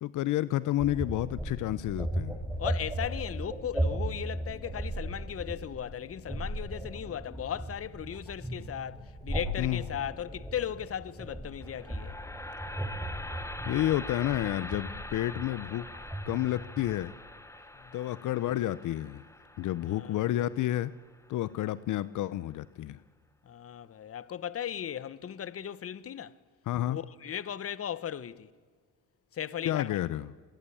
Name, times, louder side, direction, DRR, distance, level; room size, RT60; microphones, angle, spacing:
voice 1, 0.0-2.4 9.6-9.8 13.7-15.9 16.3-17.1 17.9-19.2 19.6-20.9 21.3-23.0 26.7-27.0 29.6-30.3, left 14 dB, 80° left, 0.9 m, -30 dB
sound 1, 0.8-17.1, right 1 dB, 5° right, 7.0 m, -37 dB
voice 2, 2.6-12.2 17.7-17.9 19.9-20.3 23.4-26.4 26.9-28.5 29.3-30.0, left 9 dB, 50° left, 1.2 m, -37 dB
sound 2, 11.6-21.7, left 1 dB, 10° left, 1.9 m, -44 dB
27.5 x 22.5 x 8.6 m
cardioid pair, 90°, 30 cm